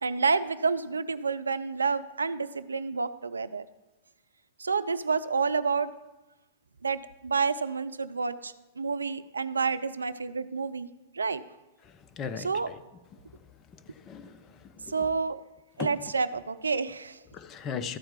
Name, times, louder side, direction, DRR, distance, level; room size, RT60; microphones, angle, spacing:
voice 1, 0.0-3.6 4.6-5.9 6.8-10.9 11.1-11.4 12.4-12.7 14.9-15.4 15.8-17.2, right 5 dB, 85° right, 14 dB, 0.5 m, -29 dB
voice 2, 12.2-12.5 13.9-15.0 15.8-15.9 17.3-18.0, left 6 dB, 30° left, 11 dB, 0.8 m, -37 dB
13.5 x 4.5 x 7.3 m, 1.0 s
hypercardioid pair, 105°, 0 cm